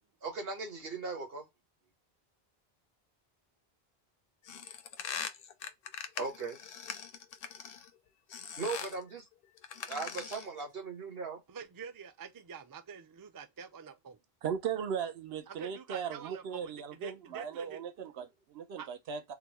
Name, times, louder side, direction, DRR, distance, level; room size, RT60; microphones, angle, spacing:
voice 1, 0.2-1.4 6.2-6.6 8.6-9.3 9.9-11.4, right 4 dB, 70° right, 1.4 m, -38 dB
sound 1, 4.5-7.9 8.3-9.0 9.6-10.6, left 7 dB, 70° left, 0.7 m, -42 dB
voice 2, 11.5-14.2 15.5-17.8 18.8-18.9, right 6 dB, 40° right, 0.3 m, -46 dB
voice 3, 14.4-19.3, right 7 dB, 90° right, 0.9 m, -38 dB
3.7 x 2.1 x 2.9 m
omnidirectional pair, 1.0 m